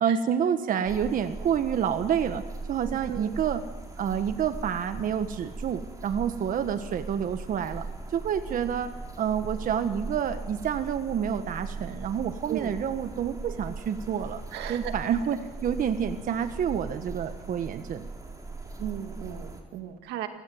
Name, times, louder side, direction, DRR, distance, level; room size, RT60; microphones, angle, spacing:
voice 1, 0.0-3.6 4.0-14.4 14.7-18.1, right 8 dB, 55° right, 9 dB, 1.4 m, -28 dB
sound 1, 0.8-19.6, right 3 dB, 20° right, 4.2 m, -39 dB
voice 2, 3.1-3.4 12.5-12.8 14.5-14.9 18.8-20.3, right 11 dB, 90° right, 7 dB, 2.0 m, -36 dB
28.0 x 16.5 x 7.9 m, 1.3 s
cardioid pair, 110°, 17 cm